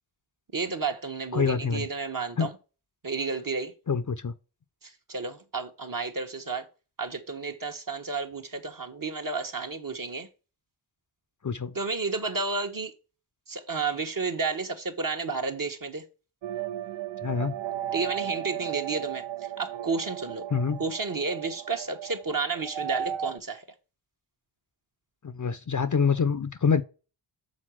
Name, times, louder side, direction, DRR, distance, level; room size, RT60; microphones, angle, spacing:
voice 1, 0.5-2.5 3.0-3.7 4.8-6.6 7.0-10.3 11.7-12.9 13.5-16.0 17.9-19.2 19.6-20.5 20.8-23.6, right 4 dB, 40° right, 1.3 m, -31 dB
voice 2, 1.3-1.9 2.4-2.5 3.9-4.3 11.4-11.7 17.2-17.5 20.5-20.8 25.2-26.8, left 6 dB, 40° left, 0.7 m, -26 dB
sound 1, 16.4-23.4, right 10 dB, 60° right, 0.6 m, -35 dB
6.4 x 4.0 x 6.2 m
cardioid pair, 55°, 49 cm